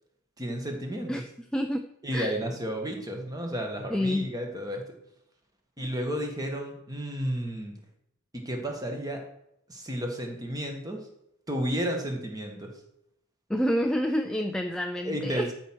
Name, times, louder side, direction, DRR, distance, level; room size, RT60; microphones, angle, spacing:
voice 1, 0.4-1.1 2.0-4.8 5.8-7.8 8.3-9.2 9.7-11.1 11.5-12.7 15.0-15.5, equal, 15° right, 2 dB, 1.5 m, -32 dB
voice 2, 1.1-1.9 2.1-2.4 3.9-4.3 13.5-15.5, equal, 5° left, 5 dB, 0.3 m, -28 dB
12.5 x 4.5 x 6.2 m, 0.78 s
head